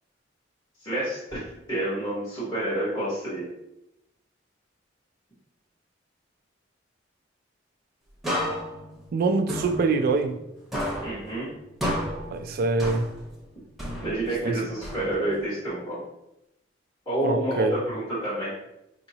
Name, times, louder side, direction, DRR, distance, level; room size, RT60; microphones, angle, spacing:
voice 1, 0.8-1.4 1.7-3.5 11.0-11.5 14.0-16.0 17.1-18.5, right 1 dB, 25° left, -11 dB, 1.2 m, -29 dB
sound 1, 8.2-10.5 10.7-13.4 13.8-15.4, equal, ahead, 0.9 m, -32 dB
voice 2, 9.1-10.4 12.3-13.1 14.4-14.6 17.2-17.7, right 3 dB, 50° right, 6 dB, 0.3 m, -24 dB
4.9 x 2.8 x 2.7 m, 0.87 s
head